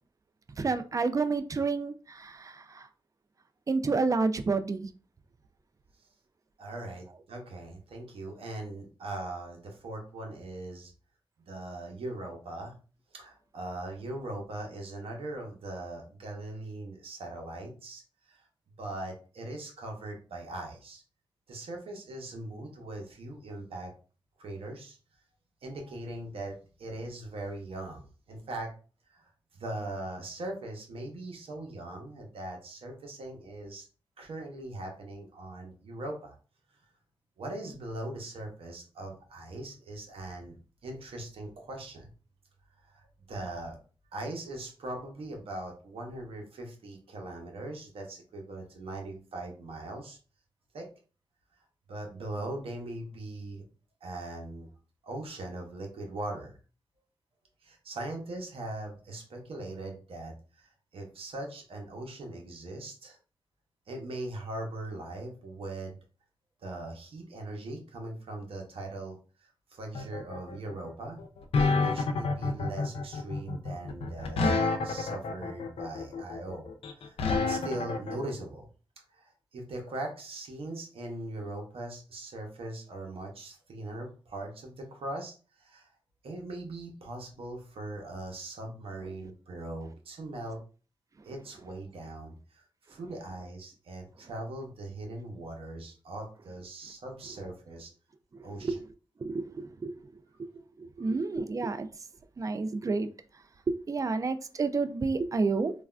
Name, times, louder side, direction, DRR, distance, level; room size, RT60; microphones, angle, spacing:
voice 1, 0.6-2.9 3.7-4.9 98.6-98.7 99.2-99.9 100.8-101.9 102.4-103.1 103.9-105.7, right 4 dB, 35° right, 0.4 m, -29 dB
voice 2, 6.6-10.9 11.5-12.8 13.1-18.4 18.8-21.0 21.5-23.9 24.4-25.0 25.6-28.7 29.1-33.9 34.2-36.4 37.4-40.6 40.8-42.1 42.8-43.8 44.1-50.2 50.7-50.9 51.9-53.6 54.0-54.7 55.0-56.6 57.6-63.2 63.9-66.0 66.6-71.2 71.8-74.5 74.8-76.7 77.0-78.7 79.1-85.9 86.2-90.6 91.2-97.9 98.4-98.8 101.0-101.1, right 2 dB, 80° right, 0.8 m, -40 dB
sound 1, 70.0-78.2, left 3 dB, 85° left, 0.4 m, -29 dB
3.3 x 2.3 x 2.4 m
cardioid pair, 55°, 10 cm